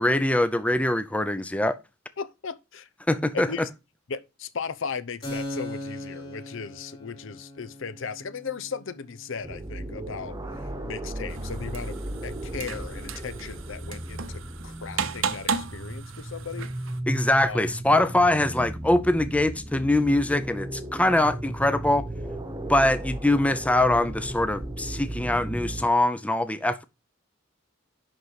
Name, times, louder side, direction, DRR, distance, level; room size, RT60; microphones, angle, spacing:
voice 1, 0.0-1.8 3.1-3.5 17.1-22.1 22.7-26.8, left 1 dB, 5° left, 0.6 m, -23 dB
voice 2, 2.2-2.9 3.3-3.7 4.1-10.4 10.8-16.7 17.4-17.6, left 5 dB, 70° left, 0.7 m, -36 dB
Keyboard (musical), 5.2-12.5, left 1 dB, 25° left, 4.8 m, -41 dB
sound 1, 9.4-25.9, right 1 dB, 20° right, 1.2 m, -35 dB
sound 2, 11.3-17.0, right 6 dB, 80° right, 0.9 m, -35 dB
11.0 x 4.1 x 4.8 m
head